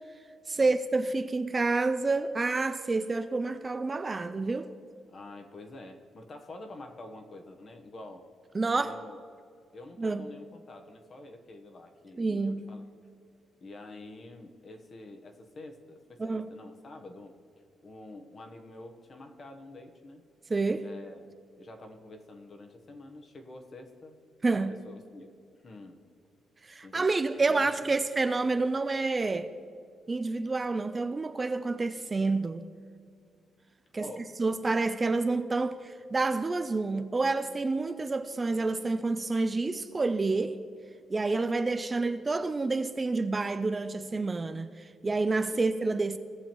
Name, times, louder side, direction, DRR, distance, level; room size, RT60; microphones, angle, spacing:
voice 1, 0.5-4.7 8.5-8.9 10.0-10.3 12.2-12.7 16.2-16.5 20.5-20.9 24.4-24.7 26.6-29.5 30.1-32.7 33.9-34.1 34.4-40.6 41.1-46.2, right 3 dB, 25° right, 0.3 m, -28 dB
voice 2, 5.1-8.3 8.7-9.2 9.7-12.8 13.6-17.3 17.8-20.2 20.8-21.3 21.6-24.2 24.7-25.3 25.6-26.0 26.8-27.1 27.4-28.0 34.0-34.3 45.5-45.7, left 2 dB, 40° left, 1.0 m, -47 dB
17.5 x 7.0 x 3.0 m
cardioid pair, 125°, 0 cm